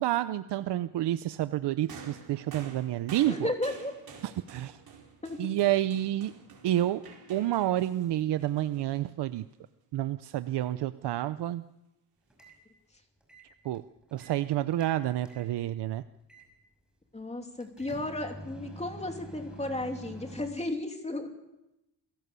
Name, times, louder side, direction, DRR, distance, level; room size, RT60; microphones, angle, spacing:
voice 1, 0.0-3.5 4.5-4.8 5.4-6.3 6.6-7.0 7.3-9.4 9.9-11.6 13.6-13.8 14.1-16.0, right 13 dB, 90° right, 12 dB, 0.7 m, -29 dB
sound 1, 1.9-9.4 10.4-10.5, right 5 dB, 65° right, 4.9 m, -50 dB
voice 2, 3.2-3.9 5.2-5.5 17.1-21.3, left 2 dB, 15° left, 4 dB, 2.9 m, -34 dB
sound 2, 12.3-12.6 13.2-14.4 14.7-15.5 16.3-16.5 17.6-20.5, right 1 dB, ahead, 5.7 m, -46 dB
27.5 x 17.5 x 6.9 m, 0.91 s
cardioid pair, 135°, 40 cm